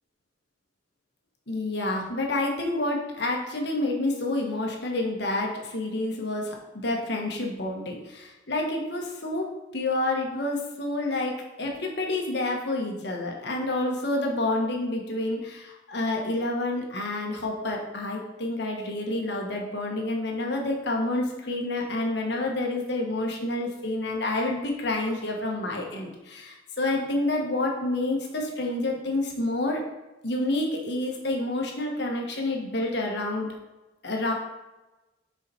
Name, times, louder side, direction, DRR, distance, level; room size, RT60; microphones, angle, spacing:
voice 1, 1.5-29.8 30.2-33.5 34.0-34.3, left 2 dB, 60° left, 0 dB, 1.4 m, -28 dB
6.8 x 4.9 x 4.3 m, 1.1 s
head